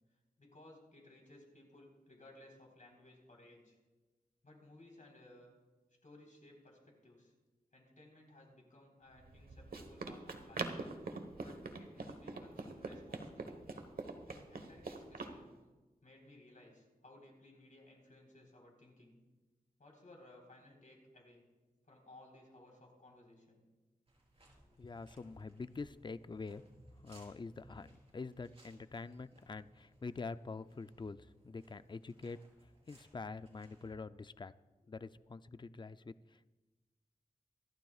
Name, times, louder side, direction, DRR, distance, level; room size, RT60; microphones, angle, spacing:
voice 1, 0.4-3.8 4.4-5.5 6.0-7.3 7.7-10.7 11.4-13.6 14.3-15.5 16.0-19.2 19.8-21.4 21.9-23.6, left 1 dB, 55° left, 1 dB, 4.1 m, -60 dB
Run, 9.2-15.4, right 3 dB, 75° right, 1.2 m, -44 dB
sound 1, 24.1-33.9, right 1 dB, 40° right, 4.4 m, -64 dB
voice 2, 24.8-26.6 27.0-32.4 32.9-34.5 34.9-36.5, left 4 dB, 30° left, 13 dB, 0.4 m, -46 dB
26.5 x 12.0 x 2.4 m, 1.2 s
wide cardioid pair, 80°, 15 cm